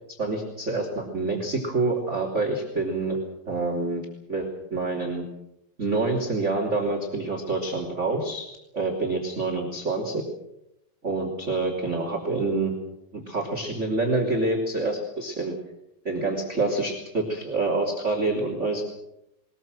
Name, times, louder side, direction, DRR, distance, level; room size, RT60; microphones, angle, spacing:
voice 1, 0.2-3.2 3.5-4.0 4.3-5.2 5.8-8.4 8.7-10.2 11.0-12.7 13.1-15.5 16.0-18.8, right 3 dB, 20° right, 2 dB, 2.9 m, -27 dB
22.5 x 20.5 x 7.7 m, 0.85 s
omnidirectional pair, 4.6 m